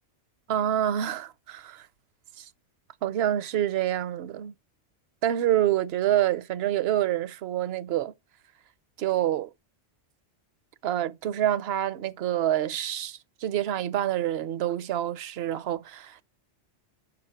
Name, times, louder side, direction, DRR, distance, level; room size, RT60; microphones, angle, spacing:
voice 1, 0.5-1.9 2.4-2.5 3.0-4.5 5.2-8.1 9.0-9.5 10.8-16.2, right 12 dB, 65° right, 0.8 m, -27 dB
5.8 x 5.3 x 5.5 m
omnidirectional pair, 1.2 m